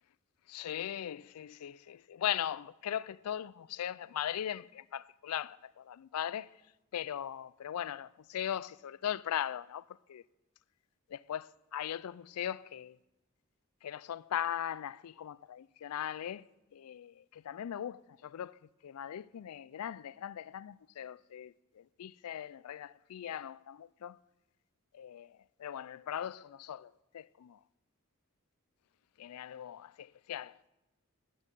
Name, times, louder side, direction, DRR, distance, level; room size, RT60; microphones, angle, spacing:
voice 1, 0.5-6.5 6.9-10.2 11.1-13.0 13.8-16.4 16.7-24.2 24.9-27.6 29.2-30.6, left 10 dB, 80° left, 0.4 m, -39 dB
13.5 x 6.4 x 8.9 m
head